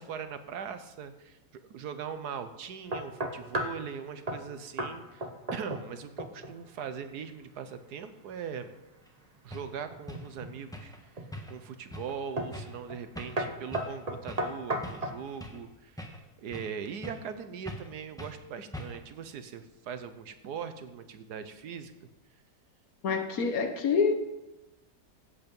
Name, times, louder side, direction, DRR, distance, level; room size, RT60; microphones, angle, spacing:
voice 1, 0.0-1.4 1.7-5.3 5.5-8.7 9.4-11.2 11.5-15.9 16.4-21.9, right 7 dB, 70° right, 1.4 m, -40 dB
sound 1, 2.9-3.8 4.3-4.5 4.8-5.0 5.2-5.9 6.2-6.6 9.9-10.6 11.2-11.6 12.4-12.6 12.9-13.1 13.4-15.2, right 1 dB, 25° right, 1.0 m, -34 dB
sound 2, 9.1-9.2 9.5-9.7 10.1-10.3 10.7-11.0 11.3-11.6 11.9-12.1 12.5-12.8 13.2-13.4 13.7-14.0 14.3-14.5 14.8-15.7 16.0-16.8 17.0-17.3 17.7-17.9 18.2-18.4 18.7-19.1, equal, ahead, 1.1 m, -42 dB
voice 2, 23.0-24.1, left 5 dB, 60° left, 1.4 m, -26 dB
15.0 x 8.3 x 5.3 m
omnidirectional pair, 1.8 m